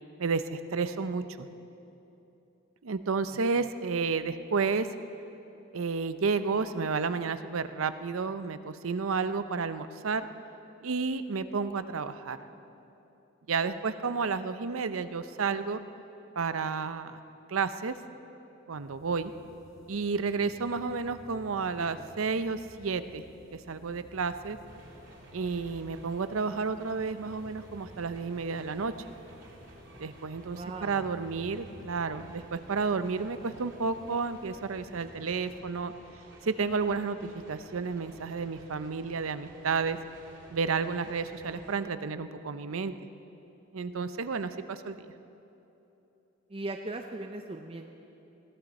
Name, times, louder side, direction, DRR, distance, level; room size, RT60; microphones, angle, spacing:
voice 1, 0.2-1.5 2.8-4.9 5.7-10.2 10.8-12.4 13.5-15.8 16.4-17.2 17.5-17.9 18.7-19.3 19.9-23.2 23.5-24.6 25.3-28.9 30.0-35.9 36.4-40.0 40.5-42.9 43.7-45.1, right 4 dB, 90° right, 11 dB, 0.6 m, -31 dB
sound 1, 18.7-36.2, left 1 dB, 80° left, 4.7 m, -55 dB
sound 2, 24.7-41.8, right 1 dB, 65° right, 2.6 m, -53 dB
voice 2, 30.5-31.1 46.5-47.9, right 2 dB, 25° right, 4 dB, 0.5 m, -39 dB
21.0 x 15.0 x 4.2 m, 3.0 s
head